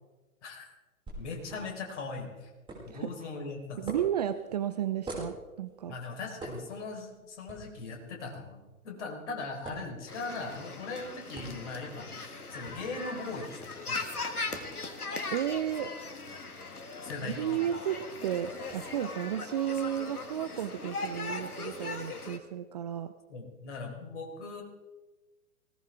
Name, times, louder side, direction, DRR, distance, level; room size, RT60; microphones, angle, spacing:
sound 1, 1.1-18.8, right 1 dB, 10° right, 5.4 m, -49 dB
voice 1, 1.2-2.5 2.8-3.9 5.9-14.0 17.0-17.7 23.3-24.6, left 3 dB, 50° left, 1 dB, 4.4 m, -40 dB
voice 2, 3.8-5.9 15.3-15.9 17.2-23.1, right 10 dB, 30° right, 12 dB, 0.5 m, -33 dB
sound 2, 10.1-22.4, left 3 dB, 80° left, 1.8 m, -39 dB
19.5 x 18.5 x 3.6 m, 1.2 s
figure-of-eight pair, 110°, 44 cm